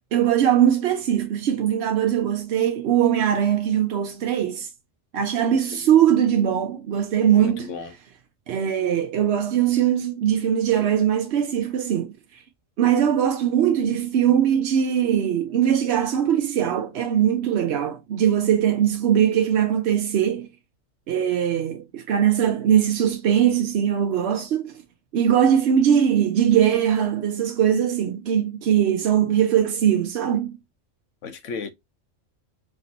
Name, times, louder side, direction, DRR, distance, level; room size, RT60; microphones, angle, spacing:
voice 1, 0.1-4.7 5.1-7.7 8.5-12.4 12.8-20.5 21.1-24.8 25.1-30.6, right 9 dB, 65° right, 0.8 m, -21 dB
voice 2, 7.4-7.9 31.2-31.7, left 5 dB, 75° left, 1.1 m, -34 dB
5.0 x 2.7 x 2.8 m
omnidirectional pair, 1.3 m